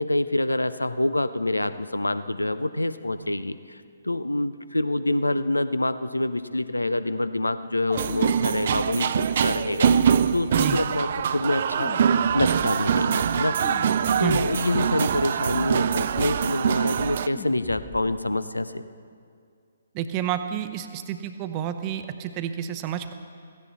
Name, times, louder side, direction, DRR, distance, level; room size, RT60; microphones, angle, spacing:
voice 1, 0.0-3.8 4.0-11.9 12.3-13.6 14.2-18.8, left 1 dB, 80° left, 13 dB, 0.6 m, -26 dB
sound 1, 7.9-9.1 9.8-11.0 11.7-12.9 13.6-14.7 15.5-16.5 17.4-18.3, left 4 dB, 20° left, 1.4 m, -40 dB
sound 2, 7.9-17.3, right 8 dB, 45° right, 0.4 m, -24 dB
voice 2, 19.9-23.1, right 10 dB, 25° right, 9 dB, 0.8 m, -29 dB
16.5 x 16.0 x 4.1 m, 2.3 s
figure-of-eight pair, 130°, 0 cm